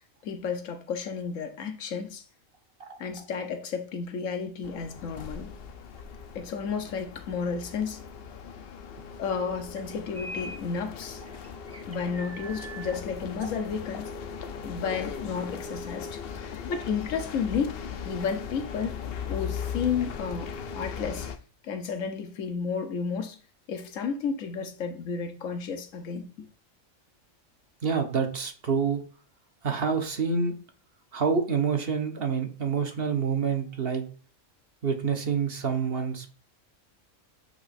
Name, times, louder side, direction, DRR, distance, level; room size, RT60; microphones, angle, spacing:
voice 1, 0.2-2.2 3.0-5.5 6.3-8.0 9.2-11.2 11.9-14.1 14.6-16.2 16.6-17.8 18.0-19.0 19.3-21.3 21.6-23.4 23.7-26.3, left 6 dB, 80° left, 1.2 m, -32 dB
sound 1, 4.6-21.4, left 6 dB, 60° left, 0.7 m, -38 dB
sound 2, 10.1-10.6 11.0-13.0, equal, 15° right, 0.5 m, -42 dB
voice 2, 27.8-29.0 29.6-30.5 31.1-34.0 34.8-36.3, right 6 dB, 50° right, 1.0 m, -27 dB
7.8 x 3.0 x 4.1 m
omnidirectional pair, 1.4 m